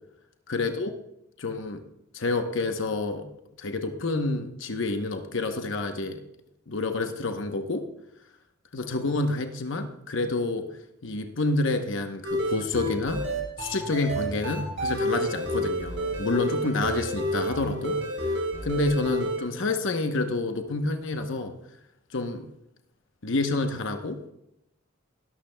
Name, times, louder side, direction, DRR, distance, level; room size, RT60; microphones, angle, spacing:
voice 1, 0.5-0.9 1.4-1.8 2.1-3.3 3.6-6.2 6.7-7.8 8.7-10.7 11.0-13.2 13.6-18.0 18.6-21.5 22.1-22.4 23.2-24.3, left 2 dB, 65° left, 6 dB, 0.9 m, -28 dB
sound 1, 12.2-19.4, equal, 65° right, 3.5 m, -29 dB
18.5 x 11.5 x 2.2 m, 0.85 s
head